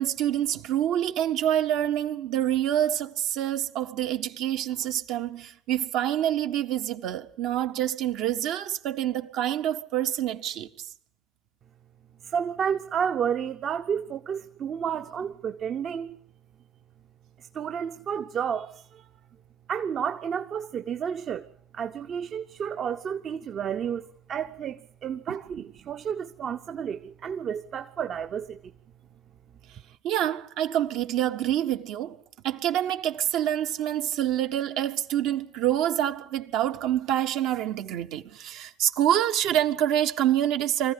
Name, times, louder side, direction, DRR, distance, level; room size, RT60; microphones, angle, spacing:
voice 1, 0.0-10.9 25.3-25.7 30.0-32.2 32.4-40.9, right 11 dB, 70° right, 1.5 m, -27 dB
voice 2, 12.2-16.2 17.5-19.1 19.7-21.5 21.7-28.7, right 7 dB, 55° right, 1.0 m, -31 dB
24.5 x 15.5 x 8.5 m
hypercardioid pair, 55°, 0 cm